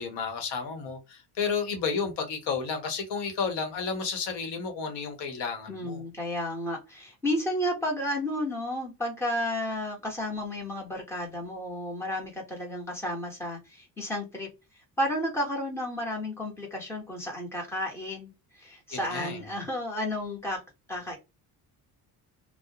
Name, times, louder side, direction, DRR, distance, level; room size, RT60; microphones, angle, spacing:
voice 1, 0.0-6.0 18.9-19.4, left 5 dB, 85° left, 0.9 m, -32 dB
voice 2, 5.7-14.5 15.0-20.6 20.9-21.2, left 1 dB, 5° left, 0.9 m, -32 dB
2.4 x 2.0 x 2.8 m
cardioid pair, 140°, 40 cm